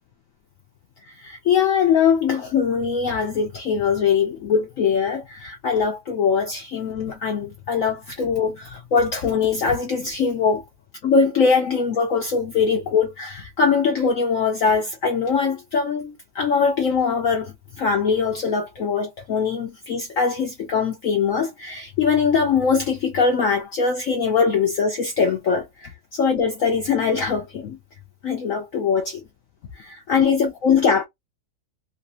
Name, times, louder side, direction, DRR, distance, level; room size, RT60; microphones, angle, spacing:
voice 1, 1.1-10.6 11.0-27.8 28.2-29.2 29.8-31.0, left 6 dB, 65° left, 0.8 m, -22 dB
3.3 x 2.5 x 2.8 m
omnidirectional pair, 2.1 m